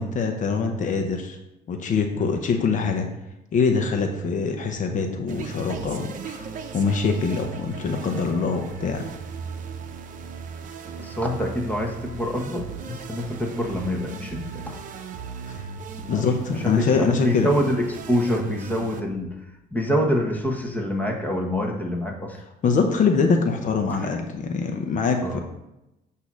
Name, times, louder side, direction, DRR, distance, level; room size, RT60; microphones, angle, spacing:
voice 1, 0.0-1.4 1.7-3.1 3.5-6.5 6.7-9.0 15.5-15.6 16.1-17.5 22.6-25.4, left 5 dB, 50° left, 4 dB, 0.8 m, -24 dB
sound 1, 5.3-19.0, right 5 dB, 50° right, 0.7 m, -37 dB
voice 2, 11.0-14.8 16.1-16.2 16.6-16.9 17.2-19.3 19.7-22.4 24.0-24.1 25.2-25.4, equal, 10° left, 1 dB, 1.2 m, -26 dB
8.2 x 2.8 x 6.1 m, 0.91 s
cardioid pair, 110°, 17 cm